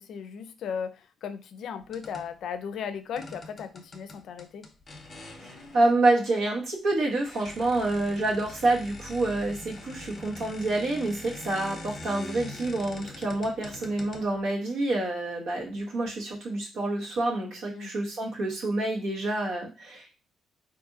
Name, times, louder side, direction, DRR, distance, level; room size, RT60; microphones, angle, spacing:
voice 1, 0.0-4.7 17.7-17.9, left 7 dB, 70° left, 10 dB, 0.4 m, -36 dB
sound 1, 1.8-2.4 3.2-6.3 6.9-7.0 7.3-14.6, left 2 dB, 35° left, 0.8 m, -44 dB
voice 2, 5.4-20.2, right 2 dB, 80° right, -2 dB, 1.2 m, -27 dB
3.7 x 2.6 x 2.6 m, 0.31 s
cardioid pair, 90°, 0 cm